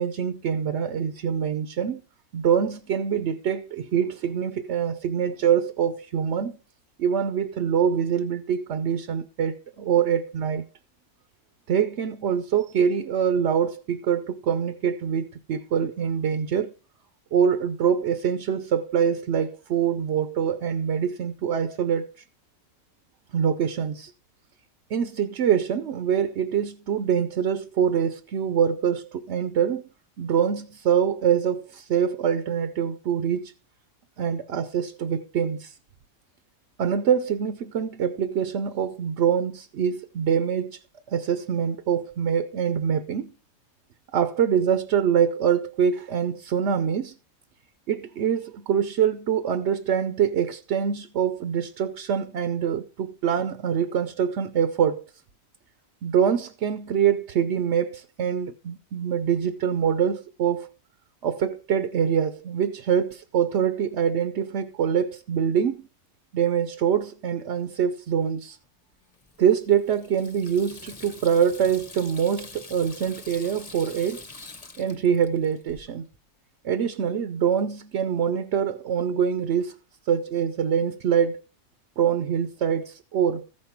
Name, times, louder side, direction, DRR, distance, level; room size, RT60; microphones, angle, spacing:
voice 1, 0.0-2.0 2.3-6.6 7.0-10.6 11.7-16.7 17.3-22.1 23.3-24.1 24.9-29.8 30.2-33.5 34.2-35.7 36.8-40.8 41.1-43.3 44.1-47.1 47.9-55.0 56.0-60.7 61.2-65.9 66.3-68.6 69.4-74.2 74.8-76.0 76.6-79.7 80.1-81.4 82.0-83.4, right 8 dB, 60° right, 0.8 m, -24 dB
Water tap faucet / Sink (filling or washing), 69.1-75.9, left 3 dB, 25° left, 1.2 m, -45 dB
14.5 x 5.3 x 5.8 m
omnidirectional pair, 1.5 m